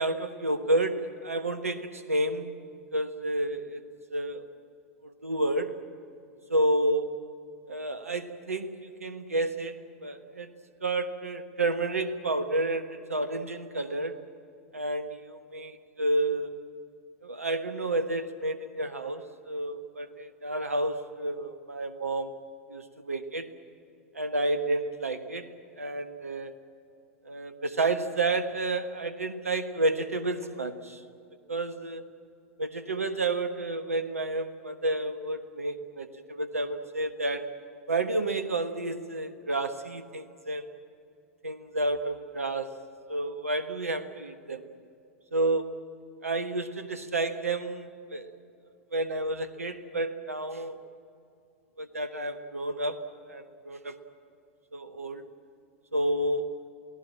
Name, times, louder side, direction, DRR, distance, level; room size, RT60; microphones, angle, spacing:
voice 1, 0.0-2.6 2.9-3.8 4.1-4.5 5.0-5.8 6.5-7.2 7.7-10.5 10.8-14.2 14.7-16.5 17.2-22.4 22.7-23.5 24.1-26.5 27.2-31.0 31.5-32.1 32.6-37.5 37.9-40.6 41.4-42.8 43.1-44.6 45.3-45.9 46.2-48.3 48.9-50.8 51.8-54.0 54.7-55.2 55.9-56.5, right 2 dB, 85° right, 10 dB, 1.3 m, -30 dB
28.0 x 18.0 x 8.7 m, 2.5 s
figure-of-eight pair, 95°, 8 cm